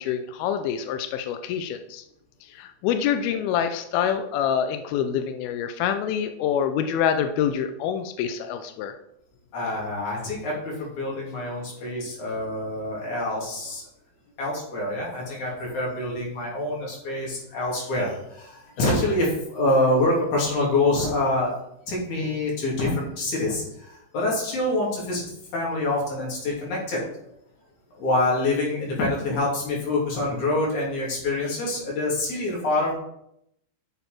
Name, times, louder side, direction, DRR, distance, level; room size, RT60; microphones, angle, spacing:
voice 1, 0.0-2.0 2.5-8.9, left 8 dB, 85° left, 8 dB, 2.1 m, -26 dB
voice 2, 9.5-13.8 14.4-21.5 21.9-25.2 25.5-27.0 28.0-32.9, left 2 dB, 45° left, -4 dB, 4.0 m, -26 dB
7.4 x 6.8 x 5.9 m, 0.77 s
omnidirectional pair, 5.1 m